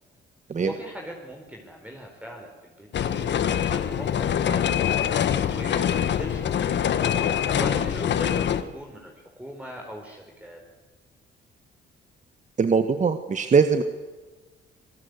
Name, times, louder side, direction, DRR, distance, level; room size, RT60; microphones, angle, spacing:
voice 1, 0.6-4.9 5.4-6.8 7.5-10.6, equal, 5° right, 0 dB, 4.7 m, -40 dB
sound 1, 2.9-8.6, left 9 dB, 65° left, 1.6 m, -24 dB
voice 2, 12.6-13.8, right 5 dB, 40° right, 9 dB, 1.5 m, -21 dB
26.5 x 19.0 x 8.2 m, 1.2 s
cardioid pair, 90°, 20 cm